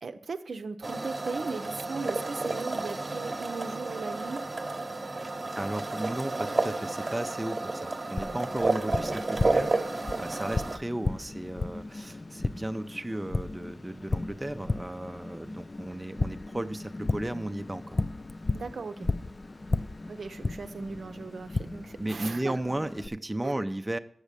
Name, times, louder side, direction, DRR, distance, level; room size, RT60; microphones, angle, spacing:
voice 1, 0.0-4.4 18.5-19.1 20.1-22.5 23.4-23.6, right 4 dB, 70° right, 8 dB, 0.6 m, -37 dB
sound 1, 0.8-10.8, right 3 dB, 40° right, 1.0 m, -31 dB
voice 2, 5.5-18.0 22.0-24.0, right 1 dB, 20° right, 8 dB, 0.5 m, -35 dB
Tap, 8.2-23.1, left 3 dB, 40° left, 0.4 m, -35 dB
8.1 x 6.1 x 6.7 m, 0.64 s
cardioid pair, 45°, 0 cm